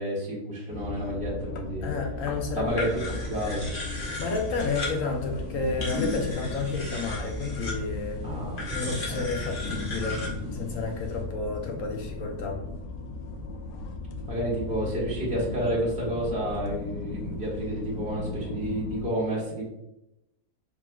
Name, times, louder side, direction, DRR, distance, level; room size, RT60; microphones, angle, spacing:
voice 1, 0.0-1.9 2.5-3.7 8.2-8.6 9.1-9.2 14.3-19.6, right 1 dB, 5° right, -6 dB, 1.2 m, -30 dB
sound 1, 0.7-19.1, left 3 dB, 85° left, 1.2 m, -36 dB
voice 2, 1.8-2.8 4.2-8.3 8.7-12.6, left 3 dB, 65° left, 2 dB, 0.8 m, -31 dB
sound 2, 2.7-11.2, left 1 dB, 35° left, 1.2 m, -36 dB
4.6 x 3.6 x 2.3 m, 0.91 s
omnidirectional pair, 1.7 m